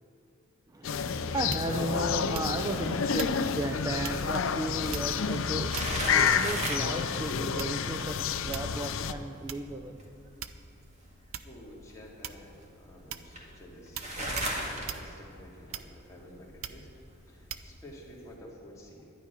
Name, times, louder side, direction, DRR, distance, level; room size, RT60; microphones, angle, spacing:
voice 1, 0.7-10.0, right 1 dB, 15° right, 3 dB, 0.4 m, -35 dB
sound 1, 0.8-9.1, left 6 dB, 65° left, 0.5 m, -30 dB
sound 2, 1.5-1.9 2.3-2.7 3.2-3.4 4.0-4.3 4.9-5.3 5.7-6.2 6.7-7.0 7.6-7.9 8.5-8.8 9.5-9.6 10.4-10.8 11.3-11.6 12.2-12.6 13.1-13.3 14.0-14.1 14.4-14.6 14.9-15.1 15.7-16.1 16.6-16.9 17.5-17.7, right 8 dB, 75° right, 0.5 m, -40 dB
sound 3, 2.2-18.3, right 1 dB, 35° right, 2.0 m, -41 dB
voice 2, 11.4-16.9 17.3-19.1, equal, 15° left, -4 dB, 2.3 m, -51 dB
12.0 x 10.0 x 5.8 m, 2.8 s
head